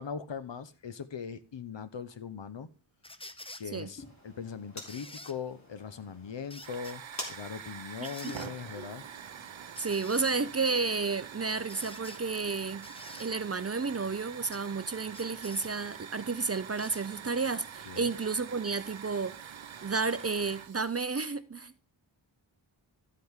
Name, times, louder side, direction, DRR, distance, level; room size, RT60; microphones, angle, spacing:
voice 1, 0.0-2.7 3.6-7.0 7.3-9.0 17.9-18.1, left 6 dB, 60° left, 0.9 m, -40 dB
sound 1, 3.0-3.7 4.9-5.4 6.5-7.0 8.0-8.5 9.8-10.3 11.5-12.2 12.8-13.3 14.4-14.6 15.1-15.7 16.8-17.0 17.9-18.0, left 2 dB, 10° left, 0.7 m, -48 dB
sound 2, 4.0-11.2, left 1 dB, 35° left, 3.3 m, -48 dB
Hiss / Fire, 6.5-21.0, right 8 dB, 70° right, 0.8 m, -46 dB
voice 2, 8.0-8.3 8.8-8.9 9.8-12.9 13.2-19.4 19.8-21.7, right 4 dB, 30° right, 0.5 m, -32 dB
13.0 x 7.7 x 3.7 m
wide cardioid pair, 75°, 48 cm